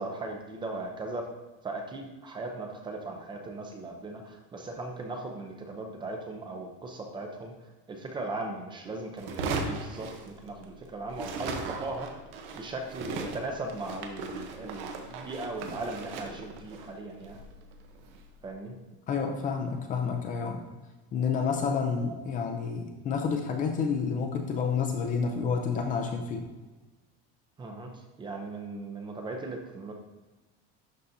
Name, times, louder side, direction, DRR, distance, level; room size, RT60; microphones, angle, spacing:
voice 1, 0.0-1.3 1.6-7.5 7.9-12.2 12.5-17.4 18.4-18.8 27.6-29.9, right 2 dB, 15° right, 3 dB, 0.6 m, -38 dB
sound 1, 9.2-10.8 11.1-18.3, right 3 dB, 75° right, 1.0 m, -38 dB
voice 2, 19.1-20.6 21.1-26.5, left 5 dB, 30° left, 4 dB, 0.5 m, -29 dB
11.5 x 4.0 x 2.7 m, 1.2 s
cardioid pair, 165°, 29 cm